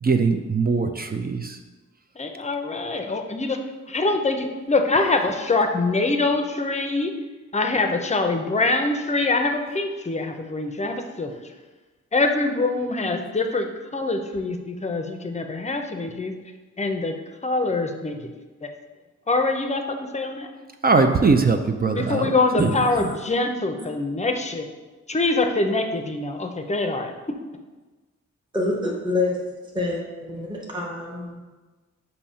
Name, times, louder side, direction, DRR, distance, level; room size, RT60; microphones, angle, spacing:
voice 1, 0.0-1.6 20.8-22.7, right 4 dB, 30° right, 6 dB, 0.4 m, -21 dB
voice 2, 2.2-3.6 3.9-7.1 7.5-11.3 12.1-16.3 16.8-17.1 17.4-18.1 18.6-18.7 19.3-19.8 20.1-20.5 21.9-24.7 25.1-27.1, left 3 dB, 25° left, 5 dB, 0.5 m, -24 dB
voice 3, 22.6-23.1 28.5-31.3, left 2 dB, 15° right, -3 dB, 1.0 m, -27 dB
7.0 x 2.8 x 5.5 m, 1.3 s
wide cardioid pair, 130°, 30 cm